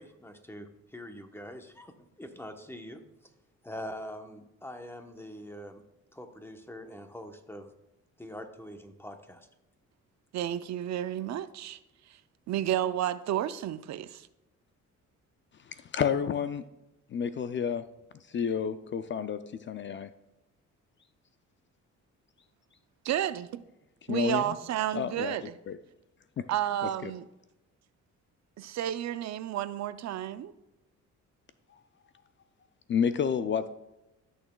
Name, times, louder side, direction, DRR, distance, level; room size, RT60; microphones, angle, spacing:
voice 1, 0.0-1.9 2.2-3.0 3.6-5.8 6.1-7.7 8.2-9.5, equal, 10° left, 0.9 m, -43 dB
voice 2, 10.3-11.8 12.1-12.2 12.5-14.3 23.0-23.6 24.1-25.6 26.5-27.3 28.6-30.5, right 11 dB, 65° right, 0.5 m, -31 dB
voice 3, 15.7-16.6 17.1-17.8 18.3-19.4 19.7-20.1 24.1-24.4 24.9-25.4 25.7-25.8 26.4-26.5 27.0-27.1 32.9-33.7, left 7 dB, 40° left, 0.4 m, -30 dB
13.5 x 6.4 x 2.3 m
cardioid pair, 90°, 30 cm